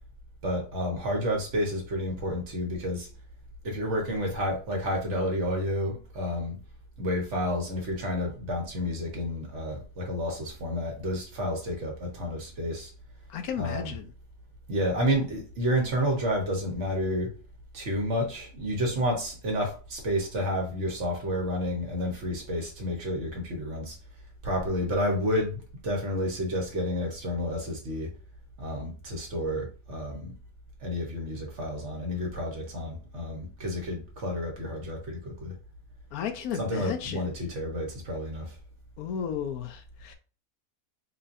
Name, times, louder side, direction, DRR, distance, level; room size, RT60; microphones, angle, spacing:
voice 1, 0.4-3.1 3.6-6.6 7.0-12.9 13.6-14.0 14.7-17.3 17.7-24.0 24.4-28.1 28.6-30.3 30.8-35.5 36.5-38.6, equal, 50° right, 1.3 m, -30 dB
voice 2, 13.3-14.1 36.1-37.2 39.0-40.1, left 8 dB, 75° left, 1.1 m, -34 dB
4.0 x 2.9 x 2.6 m
omnidirectional pair, 1.6 m